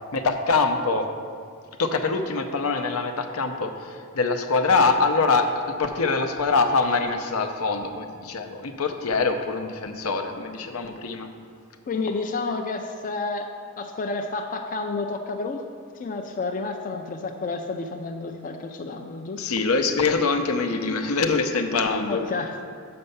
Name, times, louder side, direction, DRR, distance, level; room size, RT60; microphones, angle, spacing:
voice 1, 0.1-1.1 1.8-11.3 19.4-22.2, left 4 dB, 80° left, 6 dB, 0.7 m, -24 dB
voice 2, 11.9-13.5 13.8-15.6 16.0-19.5 22.1-22.6, left 3 dB, 40° left, 4 dB, 0.4 m, -30 dB
6.8 x 5.4 x 6.8 m, 2.2 s
head